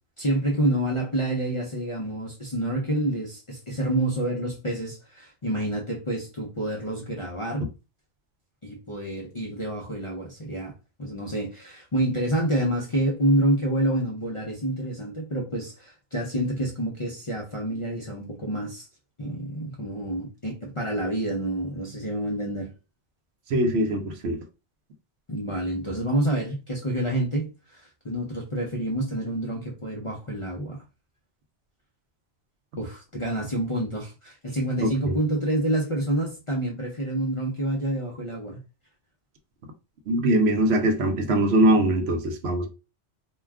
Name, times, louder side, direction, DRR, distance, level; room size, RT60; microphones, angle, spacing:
voice 1, 0.2-7.7 8.6-10.7 11.0-18.9 19.2-22.7 25.3-30.8 32.8-38.6, right 1 dB, 40° left, 0.5 m, -28 dB
voice 2, 23.5-24.4 34.8-35.1 40.1-42.7, right 1 dB, 70° right, 0.8 m, -22 dB
2.3 x 2.2 x 3.4 m
omnidirectional pair, 1.2 m